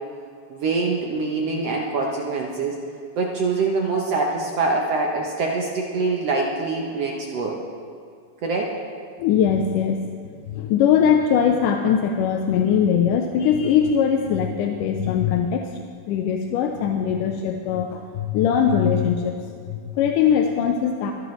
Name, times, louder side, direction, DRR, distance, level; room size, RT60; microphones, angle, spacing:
voice 1, 0.5-2.8 3.2-7.6 8.4-8.7, right 3 dB, 65° right, -1 dB, 1.7 m, -24 dB
voice 2, 9.2-10.0 10.5-15.7 16.1-19.4 19.7-21.1, left 8 dB, 85° left, 3 dB, 2.2 m, -21 dB
24.5 x 11.0 x 3.2 m, 2.3 s
omnidirectional pair, 3.7 m